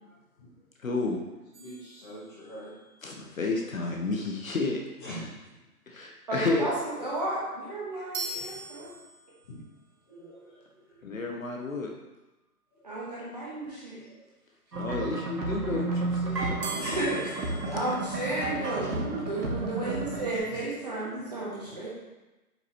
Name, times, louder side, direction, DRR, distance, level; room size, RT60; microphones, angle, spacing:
voice 1, 0.8-1.2 3.0-4.8 5.9-6.7 11.0-11.9 14.7-17.0 17.5-17.8, left 3 dB, 55° left, 1 dB, 1.1 m, -31 dB
voice 2, 1.5-2.7 5.0-5.2 7.9-8.6 9.5-9.6 10.1-11.1 12.8-12.9 14.0-14.2 17.6-17.7 18.7-19.0 20.5-20.6 21.7-21.8, equal, 15° left, -11 dB, 1.9 m, -45 dB
sound 1, 1.5-2.8 8.1-9.6 16.6-18.8, right 2 dB, 65° right, 1.3 m, -41 dB
voice 3, 6.3-8.9 12.8-14.0 16.8-21.9, right 1 dB, 25° right, -6 dB, 1.4 m, -33 dB
sound 2, 14.7-20.4, right 3 dB, 85° right, 2.0 m, -32 dB
7.8 x 5.4 x 3.0 m, 1.1 s
hypercardioid pair, 175°, 47 cm